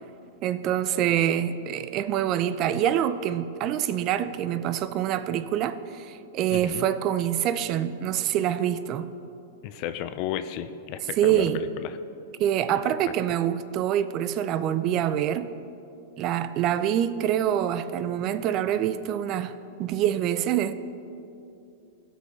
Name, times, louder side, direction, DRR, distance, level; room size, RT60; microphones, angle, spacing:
voice 1, 0.4-9.1 11.2-11.6 12.4-15.5 16.2-19.5 19.8-20.7, right 10 dB, 40° right, 0.4 m, -25 dB
voice 2, 6.5-6.9 9.6-12.0 12.7-12.8, left 10 dB, 50° left, 0.5 m, -33 dB
16.0 x 5.4 x 3.2 m
hypercardioid pair, 110°, 0 cm